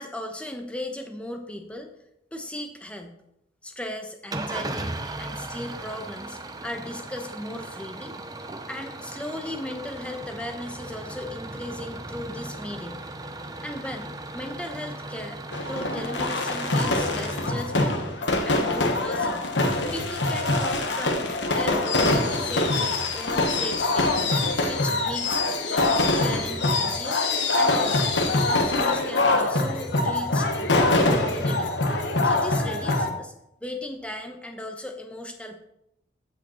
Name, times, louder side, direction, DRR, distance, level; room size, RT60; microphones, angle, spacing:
voice 1, 0.0-1.9 2.3-3.2 3.6-8.2 8.7-13.0 13.6-15.4 15.7-18.2 18.4-19.5 19.9-24.2 24.7-25.4 25.7-27.3 27.5-28.1 28.5-31.7 32.2-33.3 33.6-35.6, left 1 dB, 5° left, 4 dB, 0.9 m, -36 dB
Engine starting / Idling, 4.3-18.5, right 2 dB, 20° right, 0.7 m, -37 dB
sound 1, 15.5-33.1, left 2 dB, 85° left, 1.2 m, -24 dB
15.0 x 5.0 x 4.4 m, 0.83 s
head